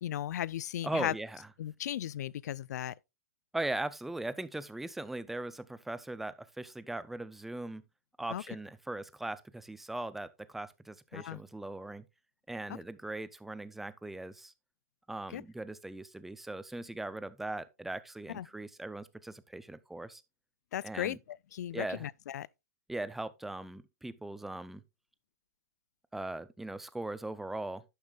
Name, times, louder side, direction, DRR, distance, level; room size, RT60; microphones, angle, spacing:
voice 1, 0.0-1.1 1.6-2.9 8.3-8.4 11.1-11.4 15.3-15.4 18.3-18.5 20.7-22.5, left 11 dB, 80° left, 0.4 m, -36 dB
voice 2, 0.8-1.5 3.5-7.8 8.2-12.0 12.5-14.5 15.1-20.2 20.8-21.2 21.7-22.1 22.9-24.8 26.1-27.8, right 2 dB, 5° right, 0.4 m, -39 dB
11.0 x 7.2 x 2.3 m
hypercardioid pair, 150°, 9 cm